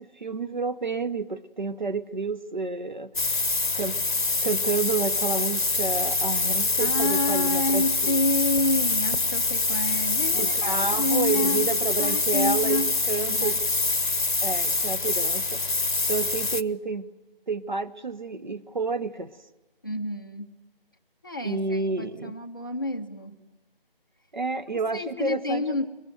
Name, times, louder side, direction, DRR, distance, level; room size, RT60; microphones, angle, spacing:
voice 1, 0.0-3.1 3.7-4.0 4.4-8.2 10.3-13.6 14.4-15.6 16.1-17.1 17.5-19.3 21.4-22.3 24.3-25.8, right 4 dB, 50° right, 10 dB, 1.2 m, -30 dB
sound 1, 3.2-16.6, left 3 dB, 55° left, 1.2 m, -25 dB
voice 2, 6.8-11.7 12.0-12.9 13.3-13.6 19.8-20.5 21.2-23.3 24.9-25.9, left 2 dB, 20° left, 2 dB, 1.0 m, -29 dB
25.0 x 21.5 x 9.2 m, 1.1 s
figure-of-eight pair, 170°, 29 cm